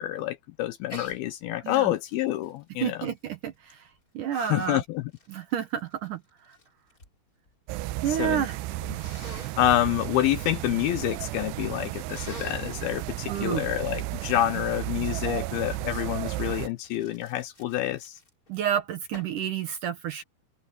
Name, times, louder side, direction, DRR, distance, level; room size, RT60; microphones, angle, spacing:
voice 1, 0.0-3.0 4.3-5.1 8.1-8.5 9.6-18.2, left 14 dB, 80° left, 2.4 m, -28 dB
Sneeze, 0.9-1.2 1.7-4.0 4.7-7.2 7.4-8.1 8.9-9.6 12.0-12.7 16.3-18.5 19.1-19.5, left 1 dB, 20° left, 4.5 m, -47 dB
voice 2, 2.8-3.9 4.1-4.8 5.3-6.2 8.0-8.6 13.3-13.6 18.5-20.2, right 9 dB, 70° right, 2.2 m, -30 dB
sound 1, 7.7-16.7, right 17 dB, 85° right, 2.7 m, -34 dB
open air
omnidirectional pair, 4.8 m